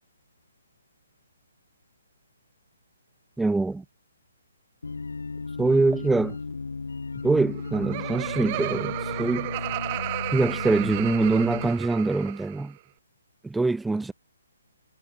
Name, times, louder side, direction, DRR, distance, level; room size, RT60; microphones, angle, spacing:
voice 1, 3.4-3.8 5.6-6.4 7.2-9.5 10.3-12.8 13.4-14.1, right 3 dB, 5° right, 0.4 m, -24 dB
sound 1, 4.8-11.7, left 4 dB, 75° left, 0.6 m, -35 dB
Laughter, 7.4-12.7, right 20 dB, 35° right, 0.8 m, -33 dB
figure-of-eight pair, 135°, 0 cm